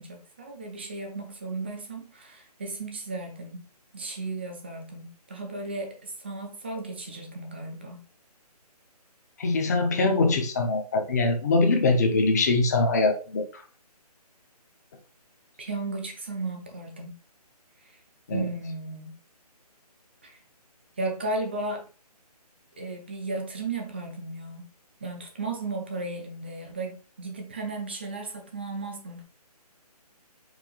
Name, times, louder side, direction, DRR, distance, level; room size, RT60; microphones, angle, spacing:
voice 1, 0.0-3.6 3.9-8.0 15.6-17.1 18.3-19.1 20.2-20.4 21.0-21.8 22.8-24.7 25.0-29.2, right 3 dB, 15° right, 3 dB, 0.4 m, -35 dB
voice 2, 9.4-13.4 18.3-18.4, left 3 dB, 25° left, 4 dB, 0.6 m, -23 dB
4.7 x 2.7 x 3.8 m, 0.37 s
hypercardioid pair, 165°, 21 cm